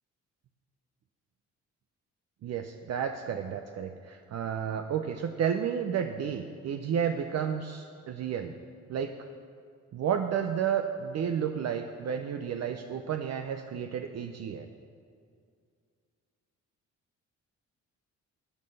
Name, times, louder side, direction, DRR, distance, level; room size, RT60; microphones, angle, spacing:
voice 1, 2.4-8.5 8.9-9.2 9.9-14.7, right 8 dB, 60° right, 6 dB, 0.7 m, -31 dB
12.5 x 7.5 x 6.7 m, 2.3 s
cardioid pair, 90°, 30 cm